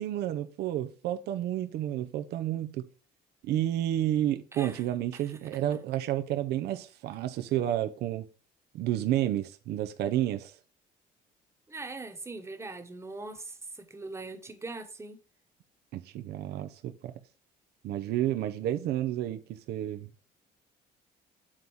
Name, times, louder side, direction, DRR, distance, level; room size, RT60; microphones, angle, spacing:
voice 1, 0.0-2.9 3.4-8.2 8.7-10.5 15.9-17.1 17.8-20.1, right 12 dB, 75° right, 0.6 m, -30 dB
voice 2, 4.5-4.8 5.1-5.4 11.7-15.2, right 3 dB, 15° right, 1.2 m, -41 dB
7.3 x 4.0 x 4.7 m
cardioid pair, 110°, 17 cm